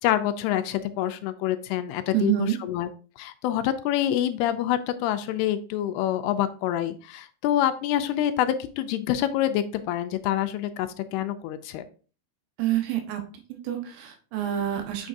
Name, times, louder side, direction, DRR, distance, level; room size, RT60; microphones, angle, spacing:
voice 1, 0.0-2.9 3.2-11.8, left 12 dB, 80° left, 10 dB, 2.5 m, -26 dB
voice 2, 2.1-2.6 12.6-13.2 13.5-15.1, right 12 dB, 80° right, 5 dB, 3.2 m, -27 dB
7.4 x 6.5 x 2.6 m, 0.38 s
omnidirectional pair, 4.7 m